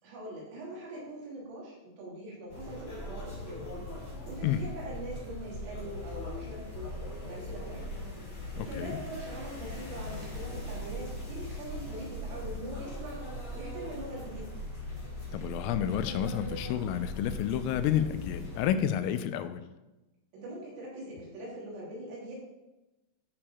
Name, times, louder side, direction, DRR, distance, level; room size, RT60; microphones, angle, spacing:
voice 1, 0.0-3.7 4.2-6.9 7.2-7.9 8.5-13.2 13.5-14.5 20.3-22.4, right 1 dB, 80° right, -6 dB, 5.3 m, -42 dB
sound 1, 2.5-18.6, left 1 dB, 25° left, 1.8 m, -40 dB
voice 2, 8.6-9.0 15.3-19.7, left 10 dB, 90° left, 10 dB, 3.2 m, -30 dB
13.0 x 4.4 x 4.4 m, 1.0 s
omnidirectional pair, 5.8 m